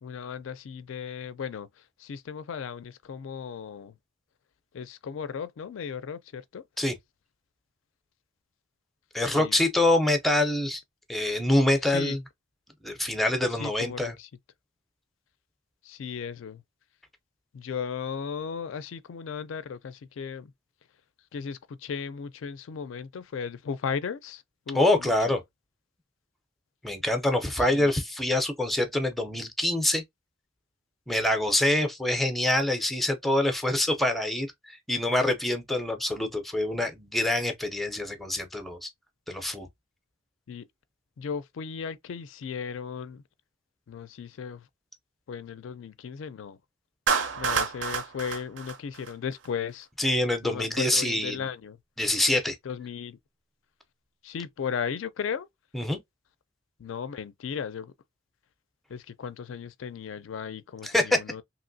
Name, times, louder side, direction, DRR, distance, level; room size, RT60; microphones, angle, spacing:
voice 1, 0.0-4.0 4.7-6.6 9.2-9.6 11.8-12.2 13.5-14.3 15.8-16.6 17.5-20.5 21.3-25.4 27.6-28.0 40.5-40.7 41.2-43.2 43.9-44.7 45.3-46.6 47.4-49.9 50.4-51.8 52.6-53.2 54.2-55.5 56.8-57.9 58.9-61.4, left 6 dB, 75° left, 0.4 m, -36 dB
voice 2, 9.1-10.8 11.1-12.2 12.8-14.1 24.7-25.4 26.8-30.0 31.1-38.9 39.3-39.7 50.0-51.5 52.0-52.6 55.7-56.0 60.8-61.2, left 1 dB, ahead, 0.5 m, -25 dB
Clapping, 47.1-49.5, right 5 dB, 65° right, 0.6 m, -29 dB
2.9 x 2.8 x 2.6 m
head